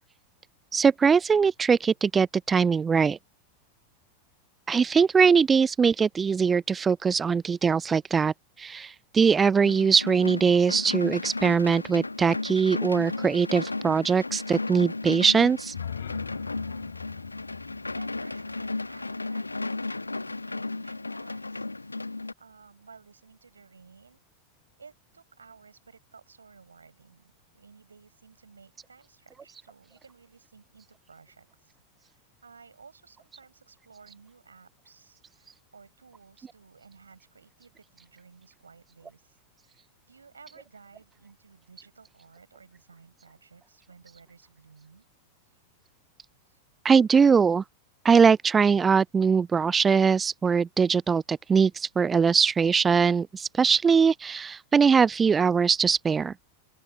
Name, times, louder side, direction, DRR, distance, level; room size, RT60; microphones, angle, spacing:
voice 1, 0.7-3.2 4.7-15.7 46.8-47.6 48.0-56.3, right 6 dB, 15° right, 0.3 m, -22 dB
sound 1, 9.6-22.3, left 2 dB, 80° left, 1.6 m, -34 dB
sound 2, 15.6-19.6, left 8 dB, 65° left, 1.0 m, -41 dB
voice 2, 17.9-24.2 24.8-31.8 32.0-39.4 39.6-45.0 45.5-45.6 46.4-46.6, right 5 dB, 75° right, 4.7 m, -55 dB
open air
figure-of-eight pair, 90°, 0 cm